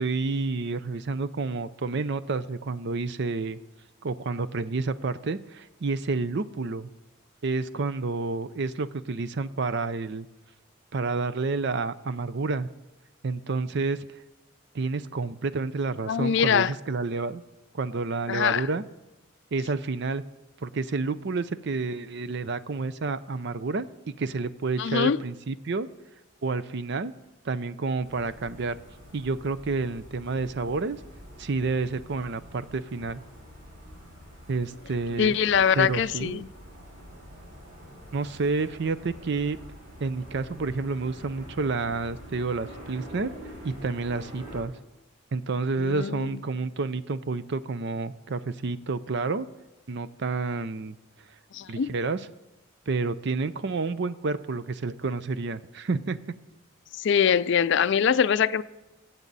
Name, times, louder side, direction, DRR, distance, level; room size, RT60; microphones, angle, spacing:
voice 1, 0.0-3.6 4.0-6.9 7.4-10.3 10.9-12.7 13.2-14.1 14.7-17.4 17.7-18.8 19.5-20.2 20.6-25.9 26.4-27.1 27.4-28.8 29.1-31.0 31.4-33.2 34.5-35.4 35.7-36.4 38.1-39.6 40.0-43.3 43.6-44.7 45.3-49.5 49.9-51.0 51.7-52.3 52.9-56.2, right 3 dB, 55° right, 0.5 m, -29 dB
voice 2, 16.1-16.7 18.3-18.7 24.8-25.2 35.2-36.5 45.8-46.4 51.5-51.9 56.9-58.6, left 7 dB, 60° left, 0.4 m, -23 dB
sound 1, 28.0-44.6, equal, 40° right, 5.3 m, -46 dB
22.5 x 8.1 x 4.1 m
head